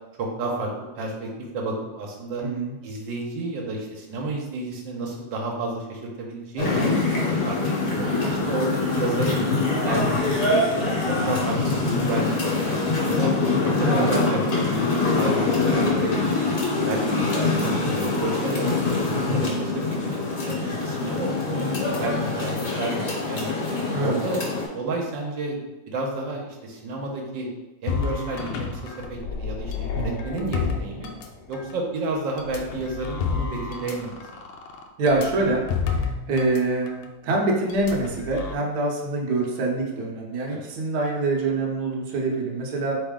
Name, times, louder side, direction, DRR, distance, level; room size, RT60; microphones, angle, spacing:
voice 1, 0.2-2.4 2.8-6.9 7.2-9.4 9.8-10.9 11.3-13.3 13.6-16.5 16.9-19.0 19.3-23.5 24.0-24.4 24.7-25.6 25.9-27.5 27.8-31.1 31.5-34.4 37.2-37.3 40.5-40.6, right 2 dB, 85° right, -1 dB, 1.5 m, -31 dB
voice 2, 2.4-2.8 13.8-14.1 19.3-19.7 23.9-24.2 29.9-30.2 35.0-35.6 35.9-43.0, right 2 dB, 70° right, -1 dB, 1.3 m, -25 dB
sound 1, 6.6-24.7, left 3 dB, 55° left, 1.4 m, -24 dB
sound 2, 27.9-31.7 32.4-36.6 36.9-37.1 37.7-38.5, left 6 dB, 80° left, 1.2 m, -30 dB
4.1 x 3.5 x 3.6 m, 1.1 s
omnidirectional pair, 1.9 m